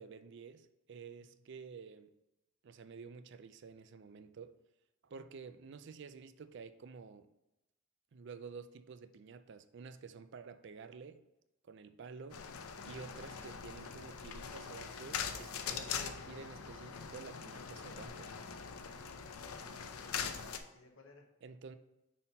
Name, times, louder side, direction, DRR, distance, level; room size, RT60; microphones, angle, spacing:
voice 1, 0.0-2.1 2.6-4.6 5.0-7.3 8.1-11.2 11.6-12.4 12.8-18.3 21.4-21.8, right 5 dB, 55° right, 0.4 m, -51 dB
sound 1, 12.3-20.6, left 6 dB, 85° left, 0.6 m, -42 dB
voice 2, 18.8-20.2 20.7-21.3, left 2 dB, 65° left, 1.0 m, -62 dB
5.6 x 4.2 x 5.3 m
head